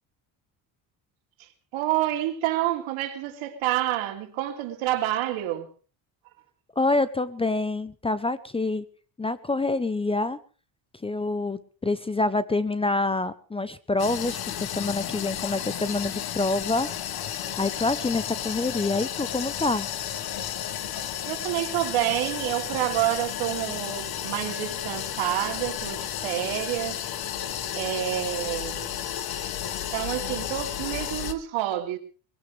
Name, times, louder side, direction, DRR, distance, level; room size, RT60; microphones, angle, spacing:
voice 1, 1.4-5.7 21.3-27.0 27.7-29.0 29.9-32.0, right 13 dB, 80° right, 3.1 m, -28 dB
voice 2, 6.8-8.8 9.2-10.4 11.0-16.9 17.6-19.9, left 2 dB, 10° left, 0.7 m, -26 dB
sound 1, 14.0-31.3, left 10 dB, 50° left, 1.5 m, -33 dB
22.0 x 17.0 x 3.3 m
cardioid pair, 140°, 46 cm